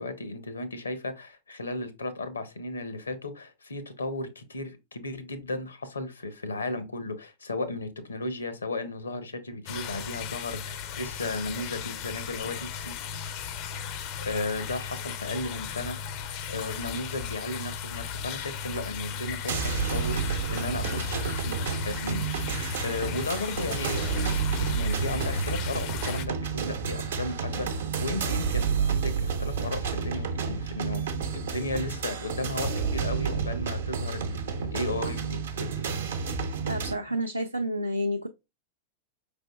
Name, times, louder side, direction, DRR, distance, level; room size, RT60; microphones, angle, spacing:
voice 1, 0.0-13.0 14.2-16.0 16.5-31.1 31.3-35.8, left 2 dB, 80° left, 0.7 m, -35 dB
sound 1, 9.7-26.3, left 7 dB, 45° left, 0.4 m, -36 dB
sound 2, 19.5-36.9, right 5 dB, 65° right, 0.8 m, -30 dB
voice 2, 36.6-38.3, equal, 90° right, 0.4 m, -29 dB
5.0 x 3.4 x 2.3 m
figure-of-eight pair, 90°, 0 cm